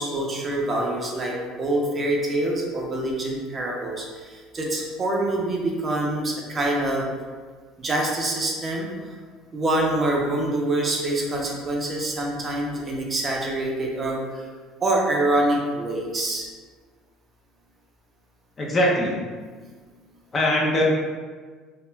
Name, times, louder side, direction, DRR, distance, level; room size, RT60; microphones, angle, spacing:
voice 1, 0.0-7.1 7.8-8.9 9.5-14.5 14.8-16.5 19.5-19.6, right 1 dB, 25° right, -2 dB, 0.4 m, -25 dB
voice 2, 18.6-19.2 20.3-20.8, equal, 25° left, -2 dB, 0.4 m, -21 dB
2.4 x 2.2 x 3.0 m, 1.5 s
cardioid pair, 135°, 0 cm